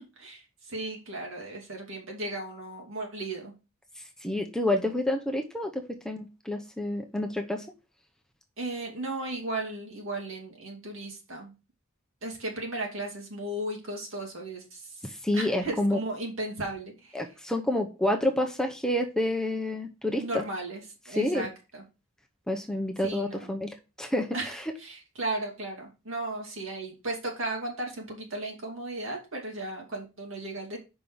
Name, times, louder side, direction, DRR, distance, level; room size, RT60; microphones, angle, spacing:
voice 1, 0.0-3.5 8.6-11.5 12.2-15.0 15.3-17.2 20.2-21.8 23.0-23.5 24.3-30.8, right 2 dB, 70° right, 1 dB, 2.7 m, -35 dB
voice 2, 4.2-7.7 15.0-16.0 17.1-20.4 21.1-21.5 22.5-24.6, left 1 dB, 5° left, 3 dB, 0.7 m, -29 dB
5.3 x 5.3 x 6.1 m, 0.30 s
head